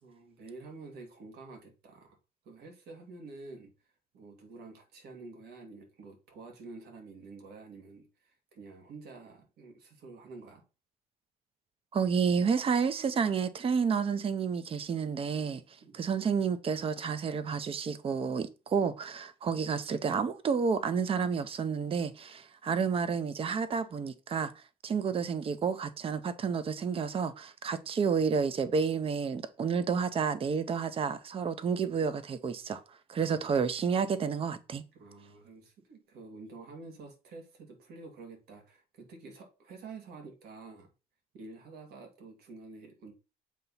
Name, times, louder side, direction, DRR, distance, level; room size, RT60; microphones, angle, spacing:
voice 1, 0.0-2.2 2.4-3.7 4.1-10.6 15.8-16.0 34.9-40.9 41.3-43.1, right 3 dB, 70° right, 2.1 m, -49 dB
voice 2, 11.9-15.6 15.9-24.5 24.8-32.8 33.1-34.8, right 6 dB, 35° right, 0.7 m, -30 dB
7.4 x 2.9 x 5.6 m
cardioid pair, 110°, 17 cm